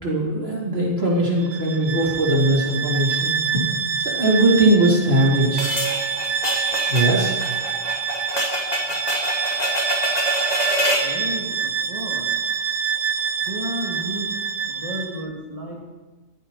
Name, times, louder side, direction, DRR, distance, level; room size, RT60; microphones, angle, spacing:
voice 1, 0.0-3.6 4.0-5.7 6.9-7.4, right 1 dB, 55° right, -4 dB, 4.0 m, -20 dB
Bowed string instrument, 1.4-15.3, right 6 dB, 85° right, 1.2 m, -26 dB
sound 1, 5.6-11.1, equal, 35° left, 2.3 m, -26 dB
voice 2, 11.0-12.3 13.4-14.3 14.7-15.8, right 1 dB, 30° right, -3 dB, 2.6 m, -32 dB
22.0 x 14.5 x 4.3 m, 1.2 s
omnidirectional pair, 1.2 m